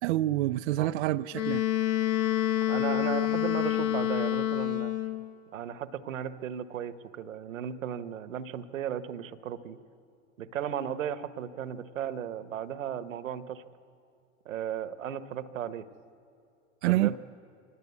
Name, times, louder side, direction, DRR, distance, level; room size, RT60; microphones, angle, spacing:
voice 1, 0.0-1.6 16.8-17.2, right 15 dB, 60° right, 0.5 m, -27 dB
Wind instrument woodwind instrument, 1.3-5.3, left 13 dB, 35° left, 1.5 m, -28 dB
voice 2, 2.7-4.9 5.5-9.8 10.4-13.6 14.4-15.9 16.9-17.2, right 9 dB, 75° right, 1.2 m, -35 dB
24.5 x 18.5 x 8.3 m
hypercardioid pair, 110°, 39 cm